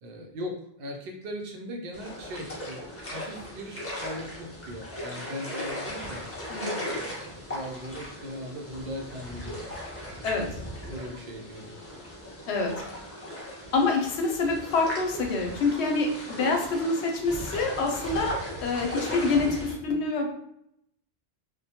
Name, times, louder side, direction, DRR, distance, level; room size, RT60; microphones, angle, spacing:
voice 1, 0.0-6.2 6.9-9.7 10.2-11.7, equal, 60° right, 1 dB, 0.7 m, -39 dB
sound 1, 1.9-19.7, equal, 20° left, 0.4 m, -38 dB
voice 2, 6.5-6.9 10.2-10.5 12.5-12.7 13.7-20.4, left 3 dB, 90° left, 2 dB, 0.9 m, -26 dB
2.1 x 2.1 x 2.8 m, 0.74 s
omnidirectional pair, 1.1 m